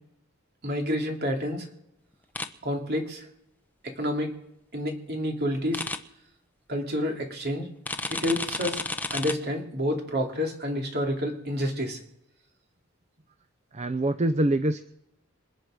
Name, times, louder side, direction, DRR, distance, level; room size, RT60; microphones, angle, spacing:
voice 1, 0.6-1.7 2.6-3.3 4.0-4.3 4.7-5.9 6.7-7.7 8.1-8.8 9.1-12.0, equal, 50° right, 2 dB, 2.9 m, -29 dB
sound 1, 2.3-2.5 5.7-6.0 7.8-9.3, left 2 dB, 10° left, 0.8 m, -31 dB
voice 2, 13.7-14.8, right 1 dB, 35° right, 12 dB, 0.6 m, -24 dB
27.0 x 9.1 x 5.1 m, 0.81 s
head